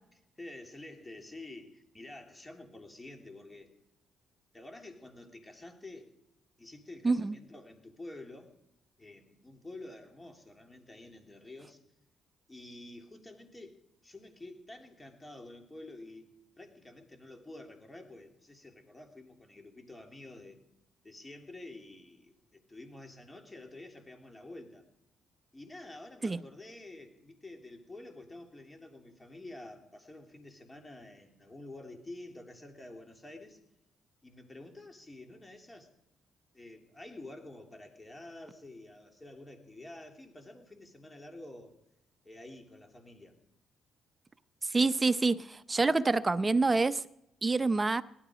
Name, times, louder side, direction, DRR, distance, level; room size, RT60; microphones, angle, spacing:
voice 1, 0.4-3.7 4.5-6.1 6.6-8.6 9.0-11.8 12.5-20.6 21.0-24.9 25.5-33.6 34.2-35.9 36.5-41.8 42.2-43.3, left 2 dB, 15° left, 3.1 m, -49 dB
voice 2, 44.6-47.0 47.4-48.0, right 3 dB, 25° right, 0.7 m, -27 dB
18.0 x 13.0 x 5.1 m
cardioid pair, 90°, 0 cm